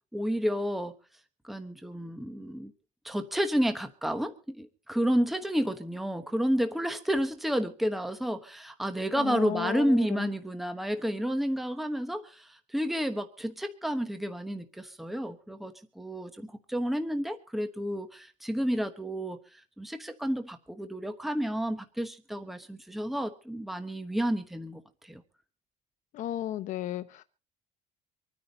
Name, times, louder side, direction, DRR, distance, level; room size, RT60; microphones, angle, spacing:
voice 1, 0.1-1.0 1.4-2.7 3.0-25.2, equal, ahead, 8 dB, 1.1 m, -31 dB
voice 2, 9.2-10.3 26.1-27.2, left 12 dB, 60° left, 12 dB, 0.8 m, -34 dB
26.0 x 9.5 x 4.1 m, 0.36 s
cardioid pair, 155°, 14 cm